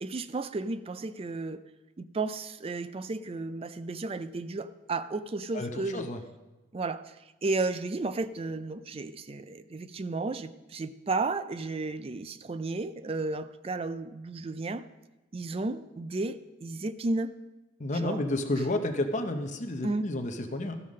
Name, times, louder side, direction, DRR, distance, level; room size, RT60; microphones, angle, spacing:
voice 1, 0.0-1.6 2.0-6.1 6.7-14.8 15.3-17.3 17.9-18.3 19.8-20.1, right 3 dB, 30° right, 0.4 m, -33 dB
voice 2, 5.5-6.2 17.8-20.8, left 1 dB, 35° left, 0.7 m, -31 dB
14.0 x 5.6 x 6.3 m
head